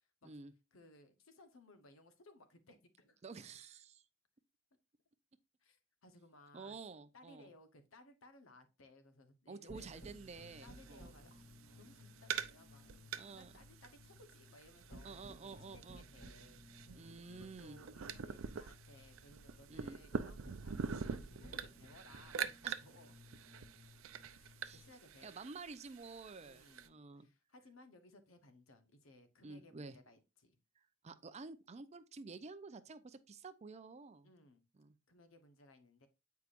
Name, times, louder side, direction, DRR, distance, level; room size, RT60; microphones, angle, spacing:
voice 1, 0.7-3.2 5.6-6.8 7.1-10.0 10.6-11.5 11.7-16.6 17.2-23.2 24.3-25.3 26.4-30.6 34.2-34.6 35.1-36.1, left 2 dB, 90° left, 1.0 m, -62 dB
voice 2, 3.2-4.0 6.5-7.5 9.5-11.1 13.2-13.5 15.0-16.1 16.9-17.8 19.7-20.0 22.6-22.7 24.6-24.8 25.2-27.3 29.4-30.0 31.0-34.3 34.8-34.9, right 4 dB, 35° right, 0.5 m, -50 dB
sound 1, 9.7-24.9, equal, 60° left, 2.5 m, -58 dB
sound 2, 9.8-26.9, right 6 dB, 85° right, 0.5 m, -46 dB
8.3 x 4.7 x 2.5 m
head